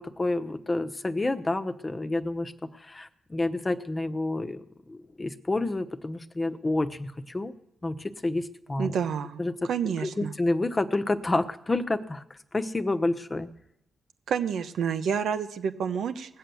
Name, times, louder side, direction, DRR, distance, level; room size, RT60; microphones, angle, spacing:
voice 1, 0.0-7.5 7.8-8.9 9.4-9.5 10.0-13.5, left 2 dB, 30° left, 9 dB, 1.1 m, -29 dB
voice 2, 8.8-9.4 9.7-10.3 14.3-16.4, right 7 dB, 75° right, 8 dB, 0.9 m, -29 dB
19.0 x 7.7 x 7.0 m, 0.79 s
supercardioid pair, 50°, 0 cm